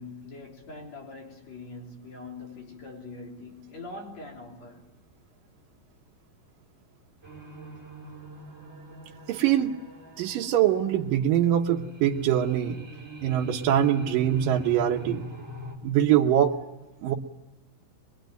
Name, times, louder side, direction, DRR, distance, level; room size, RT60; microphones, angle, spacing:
voice 1, 0.0-4.9, left 3 dB, 50° left, 4.5 m, -43 dB
sound 1, 7.2-15.7, equal, 20° right, 4.2 m, -44 dB
voice 2, 9.3-9.8 10.2-12.8 13.2-15.3 15.8-16.5 17.0-17.1, right 10 dB, 75° right, 2.7 m, -23 dB
24.0 x 22.0 x 9.2 m
omnidirectional pair, 4.0 m